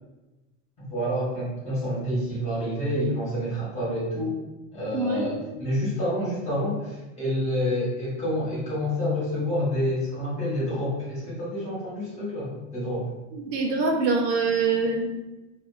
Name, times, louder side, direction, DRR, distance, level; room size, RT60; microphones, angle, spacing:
voice 1, 0.8-4.3 4.7-13.0, equal, 20° left, -8 dB, 1.2 m, -28 dB
voice 2, 4.9-5.3 13.3-15.1, right 4 dB, 75° right, 1 dB, 0.8 m, -24 dB
2.6 x 2.5 x 2.4 m, 1.1 s
supercardioid pair, 150°, 36 cm